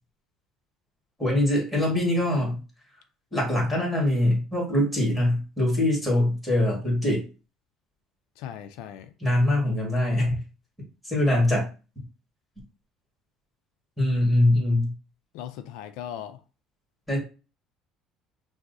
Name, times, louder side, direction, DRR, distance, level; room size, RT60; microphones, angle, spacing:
voice 1, 1.2-2.6 3.3-7.2 9.2-10.4 11.0-11.7 14.0-14.9 17.1-17.2, left 1 dB, 5° left, 1.6 m, -23 dB
voice 2, 8.4-9.1 15.3-16.4, left 10 dB, 80° left, 0.4 m, -38 dB
5.9 x 2.0 x 2.6 m
cardioid pair, 155°, 0 cm